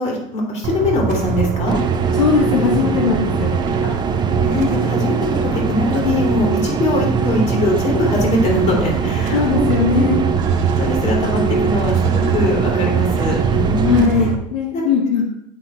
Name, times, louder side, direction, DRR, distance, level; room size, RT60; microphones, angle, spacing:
voice 1, 0.0-1.8 3.8-10.1 10.8-14.1 14.7-14.9, left 2 dB, 45° left, -1 dB, 3.1 m, -22 dB
sound 1, 0.6-14.3, right 7 dB, 55° right, 1.0 m, -22 dB
sound 2, 1.7-14.1, right 4 dB, 25° right, 0.8 m, -23 dB
voice 2, 2.1-3.5 9.3-10.2 13.8-15.3, left 6 dB, 80° left, 0 dB, 1.2 m, -18 dB
8.8 x 4.1 x 4.3 m, 0.76 s
hypercardioid pair, 90°, 16 cm